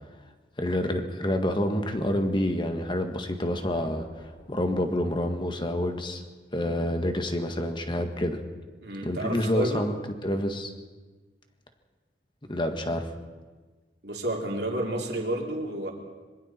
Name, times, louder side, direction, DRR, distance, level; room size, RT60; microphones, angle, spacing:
voice 1, 0.6-4.0 4.5-6.2 6.5-8.4 9.0-9.9 10.2-10.7 12.5-13.1, left 1 dB, 25° left, 6 dB, 1.7 m, -28 dB
sound 1, 3.5-5.7, equal, 55° left, 4.4 m, -51 dB
voice 2, 8.8-9.8 14.0-15.9, right 1 dB, 65° right, 0 dB, 3.3 m, -30 dB
26.0 x 22.5 x 4.5 m, 1.3 s
head